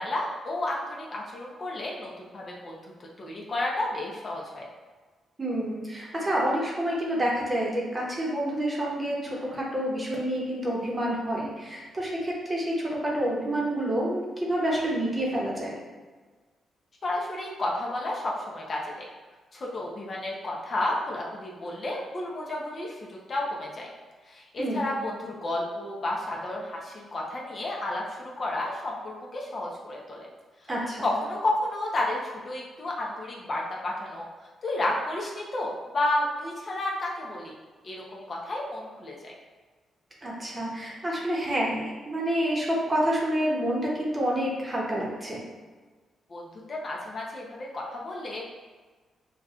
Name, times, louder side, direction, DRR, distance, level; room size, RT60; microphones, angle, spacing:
voice 1, 0.0-2.9 3.2-4.7 17.0-19.1 19.5-23.9 24.3-30.3 31.0-34.3 34.6-37.5 37.8-39.3 46.3-48.4, left 1 dB, 40° left, -2 dB, 0.7 m, -31 dB
voice 2, 5.4-15.7 24.6-24.9 30.7-31.1 40.2-45.4, right 1 dB, 25° right, -4 dB, 0.9 m, -28 dB
5.8 x 2.3 x 2.4 m, 1.4 s
cardioid pair, 110°, 0 cm